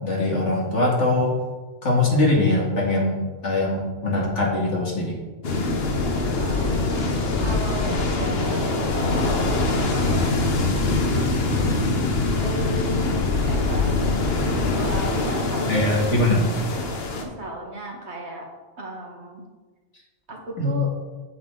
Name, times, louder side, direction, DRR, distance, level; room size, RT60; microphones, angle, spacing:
voice 1, 0.0-1.4 1.8-5.2 15.7-16.5 20.6-20.8, left 2 dB, 80° left, -3 dB, 2.4 m, -22 dB
sound 1, 5.4-17.2, left 3 dB, 60° left, 1.3 m, -23 dB
voice 2, 6.4-10.3 10.7-14.0 14.8-16.1 17.2-18.5 18.8-19.4 20.3-20.9, right 1 dB, 65° right, 0 dB, 1.9 m, -35 dB
8.5 x 8.3 x 3.8 m, 1.3 s
omnidirectional pair, 1.2 m